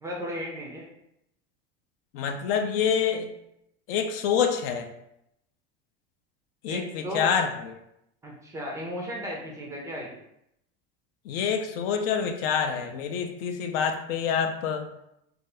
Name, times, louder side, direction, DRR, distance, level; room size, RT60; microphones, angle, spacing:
voice 1, 0.0-0.9 6.7-7.3 8.2-10.1, equal, 10° right, -2 dB, 0.3 m, -35 dB
voice 2, 2.1-3.3 3.9-4.9 6.6-7.7 11.3-14.9, left 7 dB, 70° left, 6 dB, 0.5 m, -27 dB
2.7 x 2.4 x 3.3 m, 0.81 s
supercardioid pair, 150°, 29 cm